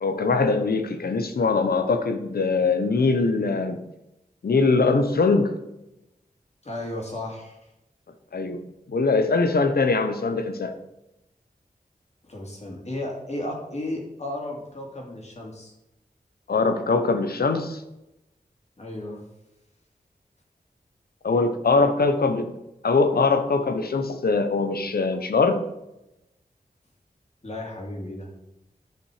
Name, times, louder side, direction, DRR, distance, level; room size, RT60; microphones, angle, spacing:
voice 1, 0.0-3.8 4.4-5.6 8.3-8.6 8.9-10.7 16.5-17.8 21.2-22.6 22.8-25.6, left 3 dB, 85° left, 8 dB, 0.9 m, -22 dB
voice 2, 6.6-7.6 12.2-15.7 18.8-19.2 27.4-28.3, left 1 dB, 45° left, -1 dB, 2.6 m, -34 dB
10.5 x 5.7 x 4.9 m, 0.91 s
wide cardioid pair, 65°, 16 cm